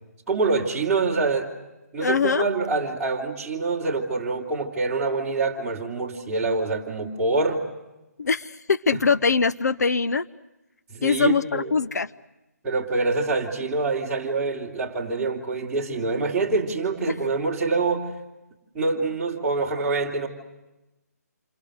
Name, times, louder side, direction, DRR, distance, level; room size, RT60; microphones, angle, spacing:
voice 1, 0.3-1.5 1.9-7.6 8.9-9.0 10.9-11.7 12.6-18.1 18.7-20.3, right 3 dB, 10° right, -5 dB, 3.4 m, -25 dB
voice 2, 2.0-2.5 8.2-10.3 11.0-12.1, left 5 dB, 70° left, 14 dB, 0.9 m, -22 dB
29.0 x 28.0 x 6.6 m, 1.0 s
hypercardioid pair, 165°, 9 cm